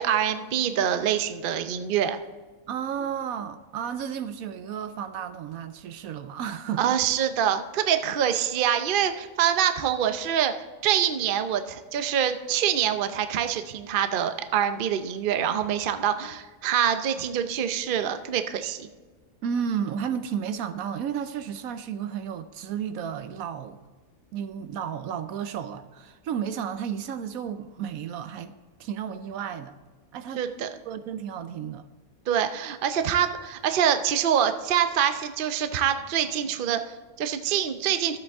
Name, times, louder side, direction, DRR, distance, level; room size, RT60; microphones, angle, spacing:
voice 1, 0.0-2.2 6.8-10.5 10.8-18.9 30.4-30.7 32.3-38.2, right 9 dB, 55° right, 0.6 m, -25 dB
voice 2, 2.7-7.0 19.4-23.8 24.3-29.7 30.1-30.5 30.9-31.8, right 8 dB, 75° right, 1.0 m, -33 dB
13.5 x 8.0 x 3.5 m
omnidirectional pair, 1.6 m